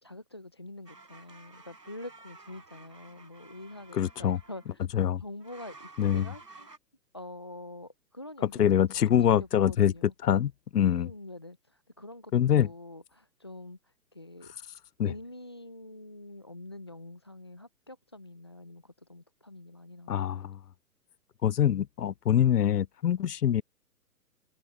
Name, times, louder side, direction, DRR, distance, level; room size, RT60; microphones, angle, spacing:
voice 1, 0.0-4.9 5.2-6.7 7.1-10.1 10.9-14.5 15.0-20.5, left 1 dB, 20° left, 0.4 m, -46 dB
sound 1, 0.9-4.8 5.4-6.8, right 3 dB, 90° right, 6.3 m, -52 dB
voice 2, 3.9-4.4 4.9-5.2 6.0-6.3 8.6-9.9 10.2-11.1 12.3-12.7 15.0-15.1 20.1-20.6 21.4-23.6, left 10 dB, 75° left, 0.8 m, -24 dB
open air
figure-of-eight pair, 130°, 48 cm